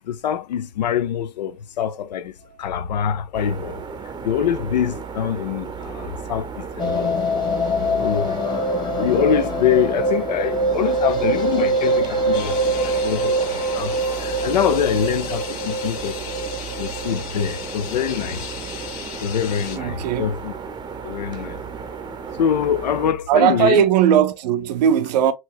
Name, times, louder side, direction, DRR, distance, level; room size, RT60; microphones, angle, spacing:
voice 1, 0.0-7.1 7.9-16.2 16.8-18.5 19.2-20.5 21.0-22.0 22.4-23.9, left 9 dB, 85° left, 0.5 m, -25 dB
sound 1, 3.3-23.1, right 6 dB, 20° right, 0.6 m, -34 dB
sound 2, 6.8-18.9 19.2-19.3 19.6-19.7 19.9-20.0, right 1 dB, 20° left, 1.2 m, -24 dB
sound 3, 12.3-19.8, left 8 dB, 60° left, 1.1 m, -36 dB
voice 2, 19.7-20.3 23.3-25.3, right 9 dB, 75° right, 0.6 m, -18 dB
4.4 x 3.0 x 2.2 m
hypercardioid pair, 95°, 21 cm